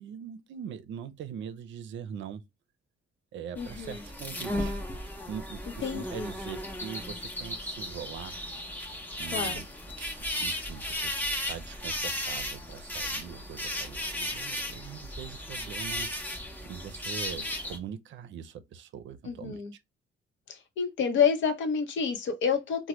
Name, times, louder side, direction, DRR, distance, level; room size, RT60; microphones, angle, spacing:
voice 1, 0.0-2.4 3.3-4.8 5.3-8.4 9.2-9.6 10.0-11.1 11.5-16.4 16.6-19.6, right 8 dB, 70° right, 0.5 m, -42 dB
voice 2, 3.6-4.0 5.8-6.3 9.3-9.5 19.2-19.7 20.5-22.9, left 6 dB, 70° left, 0.8 m, -28 dB
sound 1, 3.6-17.8, left 1 dB, 10° left, 0.6 m, -35 dB
3.1 x 2.1 x 2.9 m
cardioid pair, 90°, 20 cm